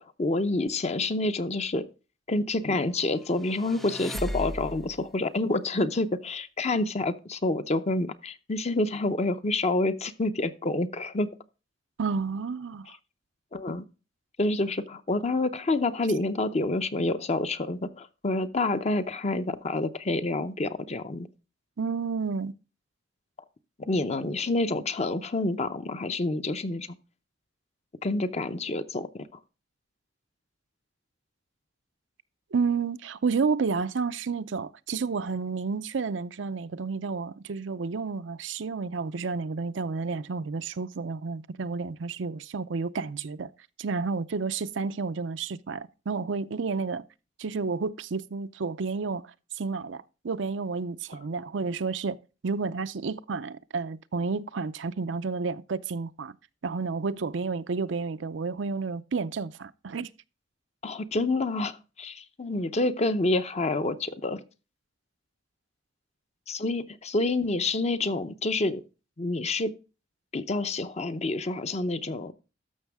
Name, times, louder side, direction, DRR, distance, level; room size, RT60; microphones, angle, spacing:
voice 1, 0.0-1.8 2.3-11.3 13.5-13.8 14.4-21.3 23.8-26.9 28.0-29.3 60.8-64.4 66.5-68.8 69.2-69.7 70.3-72.3, left 2 dB, 35° left, 0.7 m, -28 dB
sound 1, 3.3-5.1, equal, ahead, 0.5 m, -36 dB
voice 2, 12.0-12.9 21.8-22.5 32.5-43.5 43.8-47.0 47.4-56.3 56.6-60.1, right 4 dB, 75° right, 0.5 m, -31 dB
13.0 x 6.2 x 3.5 m
head